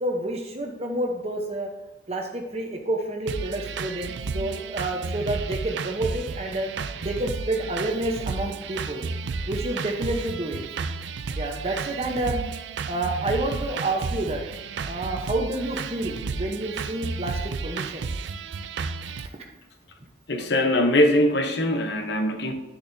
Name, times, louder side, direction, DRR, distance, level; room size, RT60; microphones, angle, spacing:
voice 1, 0.0-1.7 2.1-6.7 7.0-9.0 9.5-10.6 11.4-12.4 12.9-14.4 14.8-18.1, right 1 dB, 30° right, 1 dB, 0.9 m, -29 dB
sound 1, 3.3-19.3, right 4 dB, 70° right, 0.4 m, -32 dB
voice 2, 20.3-22.5, left 1 dB, 60° left, 6 dB, 0.9 m, -22 dB
10.5 x 6.9 x 2.7 m, 1.0 s
head